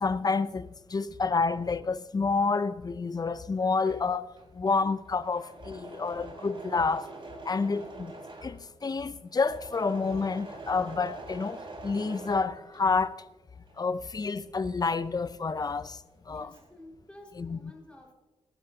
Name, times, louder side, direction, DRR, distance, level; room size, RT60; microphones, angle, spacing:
voice 1, 0.0-7.1 7.5-8.1 8.4-13.2 13.8-16.0 16.3-16.5 17.4-17.7, left 4 dB, 30° left, 0.6 m, -29 dB
Engine / Mechanisms, 3.6-13.2 13.5-16.9, right 2 dB, 45° right, 3.5 m, -45 dB
voice 2, 16.3-18.1, left 1 dB, 10° left, 4.6 m, -51 dB
19.5 x 12.5 x 2.8 m
cardioid pair, 80°, 12 cm